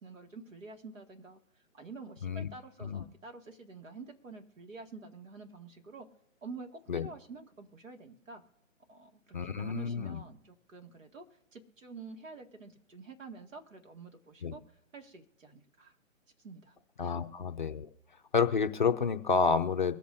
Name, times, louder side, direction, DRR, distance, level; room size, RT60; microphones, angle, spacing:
voice 1, 0.0-1.4 1.7-6.1 6.4-8.4 8.9-14.6 14.9-16.0 16.4-17.2, right 3 dB, 70° right, 3 dB, 2.3 m, -48 dB
voice 2, 9.3-10.2 14.4-14.5 17.0-17.9 18.3-20.0, left 5 dB, 35° left, 8 dB, 0.6 m, -29 dB
23.5 x 8.4 x 2.7 m, 0.95 s
hypercardioid pair, 155°, 40 cm